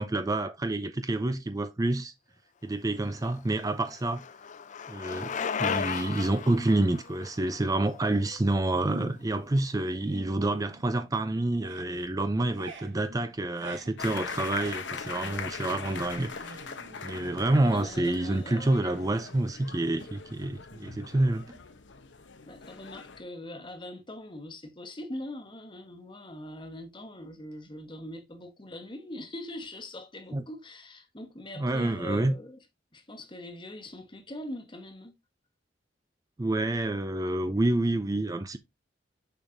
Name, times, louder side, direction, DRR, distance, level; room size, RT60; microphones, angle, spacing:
voice 1, 0.0-2.1 2.6-4.2 4.9-16.6 17.0-21.6 30.3-30.4 31.6-32.3 36.4-38.6, right 2 dB, 20° right, 0.4 m, -28 dB
Bicycle, 3.0-9.0, left 6 dB, 45° left, 0.5 m, -36 dB
sound 1, 8.9-9.4 9.8-11.2 11.5-18.0, right 2 dB, 85° right, 1.8 m, -47 dB
sound 2, 14.0-23.2, left 5 dB, 90° left, 0.9 m, -41 dB
voice 2, 17.6-19.1 22.5-32.6 32.9-35.1, left 1 dB, 25° left, 1.2 m, -42 dB
6.8 x 6.4 x 2.6 m
head